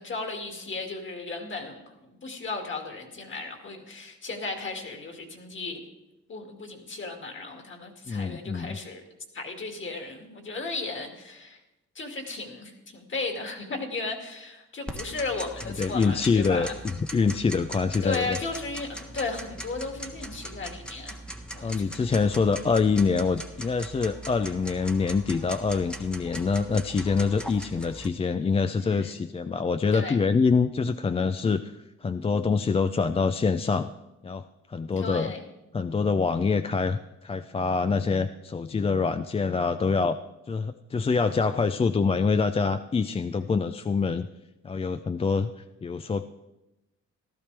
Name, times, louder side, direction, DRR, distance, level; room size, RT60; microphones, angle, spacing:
voice 1, 0.0-5.8 6.3-9.0 9.3-11.6 11.9-16.8 18.0-21.2 21.5-22.1 28.8-29.2 29.9-30.2 35.0-35.4 43.3-43.5, left 3 dB, 40° left, 3 dB, 2.3 m, -35 dB
voice 2, 8.1-8.8 15.8-16.7 17.0-18.4 21.6-33.9 34.2-35.3 35.7-40.2 40.5-44.3 44.6-46.3, left 5 dB, 20° left, 10 dB, 0.4 m, -25 dB
Tick-tock, 14.9-28.1, right 1 dB, 5° left, 1.2 m, -40 dB
15.0 x 12.5 x 3.4 m, 0.96 s
cardioid pair, 90°, 30 cm